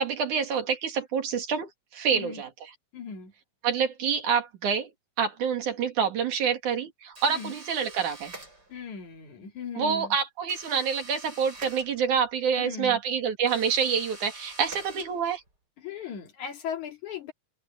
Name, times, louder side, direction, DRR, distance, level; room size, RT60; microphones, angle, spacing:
voice 1, 0.0-2.5 3.6-4.9 5.2-8.3 9.8-15.4, right 6 dB, 85° right, 4.0 m, -27 dB
voice 2, 2.1-2.4 2.9-3.3 7.3-7.5 8.7-10.2 12.6-13.0 15.8-17.3, left 7 dB, 75° left, 3.8 m, -38 dB
sound 1, 7.2-9.0 10.5-12.4 13.4-15.5, right 2 dB, 30° right, 8.2 m, -46 dB
open air
omnidirectional pair, 3.4 m